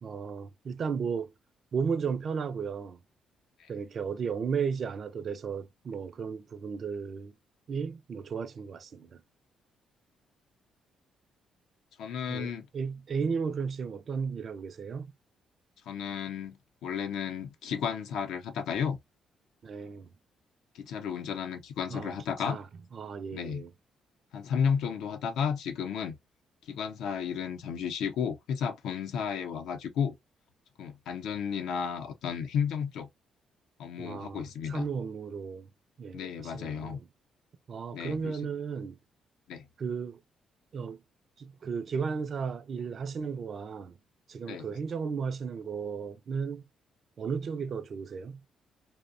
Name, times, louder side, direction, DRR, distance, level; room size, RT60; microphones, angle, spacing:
voice 1, 0.0-1.3 1.7-3.0 3.7-7.3 7.7-9.2 12.3-15.1 19.6-20.1 21.9-22.1 22.4-22.7 22.9-23.7 34.0-35.7 36.0-37.1 37.7-39.0 39.8-40.2 40.7-41.0 41.4-43.9 44.3-46.6 47.2-48.4, right 6 dB, 50° right, 0.3 m, -34 dB
voice 2, 12.0-12.7 15.9-16.6 16.8-19.0 20.7-22.6 23.3-23.6 24.3-26.2 26.7-30.1 30.8-33.1 33.8-34.9 36.1-37.0 37.9-38.4 39.5-39.7 44.4-44.7, left 7 dB, 85° left, 0.5 m, -33 dB
2.7 x 2.1 x 2.4 m
cardioid pair, 90°, 0 cm